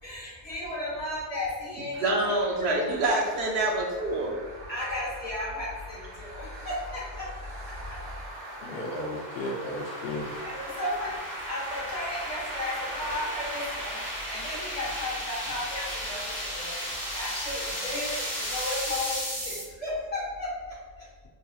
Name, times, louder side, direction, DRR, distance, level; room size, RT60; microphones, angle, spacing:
voice 1, 0.0-2.3 2.6-3.2 4.7-7.3 7.7-8.0 10.4-11.2 11.4-21.1, left 1 dB, 35° left, -8 dB, 1.3 m, -35 dB
sound 1, 1.9-19.2, right 1 dB, 15° right, 0.8 m, -45 dB
voice 2, 2.0-4.3, right 2 dB, 70° right, -1 dB, 0.9 m, -26 dB
sound 2, 5.7-19.6, equal, 30° right, 1.6 m, -36 dB
voice 3, 8.6-10.5, left 1 dB, 65° left, -1 dB, 0.7 m, -34 dB
5.2 x 2.8 x 2.3 m, 1.4 s
omnidirectional pair, 1.1 m